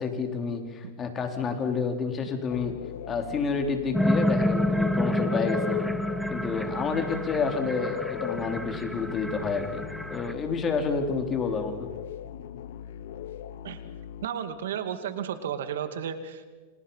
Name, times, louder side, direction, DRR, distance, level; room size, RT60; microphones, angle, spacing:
voice 1, 0.0-2.7 3.1-5.8 6.3-9.8 10.1-11.9, left 5 dB, 25° left, 5 dB, 3.9 m, -29 dB
sound 1, 2.5-14.3, left 10 dB, 75° left, 1.0 m, -39 dB
sound 2, 3.9-10.3, left 1 dB, ahead, 1.2 m, -29 dB
voice 2, 14.2-16.5, right 8 dB, 85° right, 9 dB, 2.3 m, -33 dB
29.0 x 26.0 x 5.7 m, 1.4 s
supercardioid pair, 135°, 0 cm